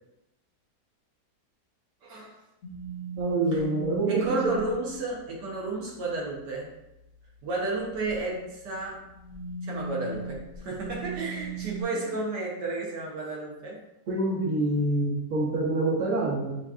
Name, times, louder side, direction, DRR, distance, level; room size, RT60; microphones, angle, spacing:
voice 1, 2.0-2.4 3.5-3.6 4.1-6.7 7.4-9.0 9.6-13.8, right 3 dB, 80° right, -2 dB, 1.5 m, -32 dB
sound 1, 2.6-4.7 7.7-8.1 9.0-11.8, right 5 dB, 60° left, 0.7 m, -37 dB
voice 2, 3.2-4.5 14.1-16.6, right 2 dB, 50° right, -3 dB, 1.3 m, -26 dB
6.7 x 2.7 x 2.4 m, 0.89 s
omnidirectional pair, 1.8 m